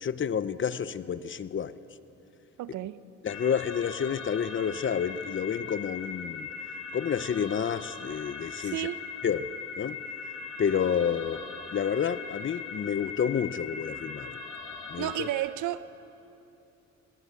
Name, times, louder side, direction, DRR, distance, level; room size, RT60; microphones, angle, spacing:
voice 1, 0.0-1.7 3.2-6.5 6.9-8.9 9.2-9.5 9.8-10.0 10.6-11.4 11.7-14.4 14.9-15.3, left 7 dB, 40° left, 15 dB, 0.8 m, -29 dB
voice 2, 2.6-3.0 8.6-9.0 15.0-15.9, right 14 dB, 80° right, 15 dB, 0.8 m, -32 dB
sound 1, 3.3-15.3, left 5 dB, 80° left, 4.8 m, -40 dB
21.5 x 20.5 x 8.4 m, 2.8 s
cardioid pair, 90°, 30 cm